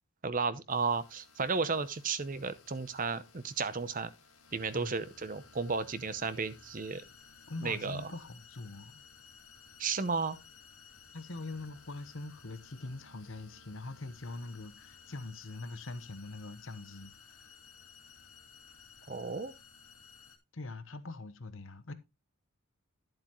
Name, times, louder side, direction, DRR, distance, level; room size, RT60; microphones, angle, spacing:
voice 1, 0.2-4.1 4.5-7.0 7.6-8.1 9.8-10.4 19.1-19.5, right 4 dB, 35° right, 0.7 m, -33 dB
sound 1, 0.7-20.4, left 5 dB, 75° left, 2.1 m, -57 dB
voice 2, 7.5-9.0 11.1-17.6 20.5-21.9, left 2 dB, 60° left, 1.0 m, -43 dB
11.5 x 7.7 x 3.0 m
head